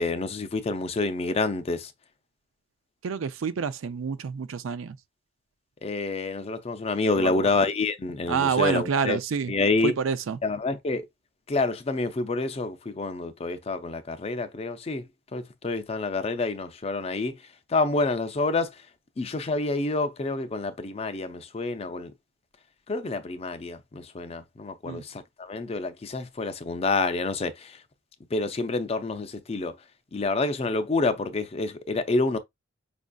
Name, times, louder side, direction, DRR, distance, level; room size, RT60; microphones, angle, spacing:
voice 1, 0.0-1.9 5.8-9.2 9.5-9.9 10.4-11.1 11.5-15.1 15.3-17.4 17.7-18.8 19.2-22.1 22.9-27.8 28.3-29.7 30.1-32.4, left 3 dB, 30° left, 0.4 m, -28 dB
voice 2, 3.0-5.0 7.2-7.5 8.3-9.5 9.8-10.4 24.9-25.0, right 6 dB, 90° right, 0.4 m, -28 dB
5.0 x 2.5 x 2.2 m
head